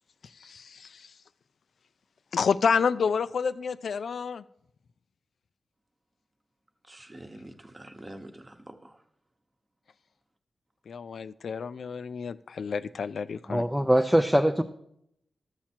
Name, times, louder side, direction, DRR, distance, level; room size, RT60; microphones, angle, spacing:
voice 1, 0.4-1.1 2.3-4.4 10.9-13.6, left 6 dB, 85° left, 0.3 m, -29 dB
voice 2, 6.9-9.0, right 1 dB, 20° right, 0.9 m, -46 dB
voice 3, 13.5-14.6, equal, ahead, 0.4 m, -22 dB
12.0 x 7.3 x 4.4 m
wide cardioid pair, 135°, 0 cm